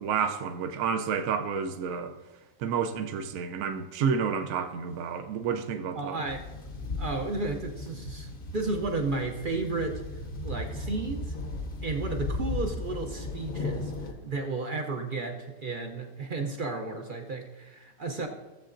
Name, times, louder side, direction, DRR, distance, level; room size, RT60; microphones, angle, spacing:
voice 1, 0.0-2.1 2.6-6.2, right 6 dB, 75° right, 1.0 m, -30 dB
voice 2, 5.9-6.4 7.0-10.0 10.4-11.3 11.8-18.3, right 3 dB, 50° right, 0.7 m, -33 dB
sound 1, 6.3-14.1, left 2 dB, 45° left, 0.9 m, -36 dB
15.5 x 7.4 x 2.5 m
omnidirectional pair, 1.5 m